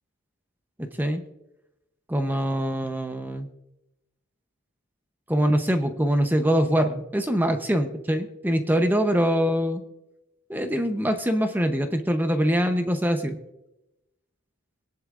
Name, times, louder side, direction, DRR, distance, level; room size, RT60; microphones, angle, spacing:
voice 1, 0.8-1.2 2.1-3.5 5.3-9.8 10.5-13.4, equal, 10° right, 7 dB, 0.8 m, -24 dB
20.5 x 10.5 x 2.5 m, 0.92 s
head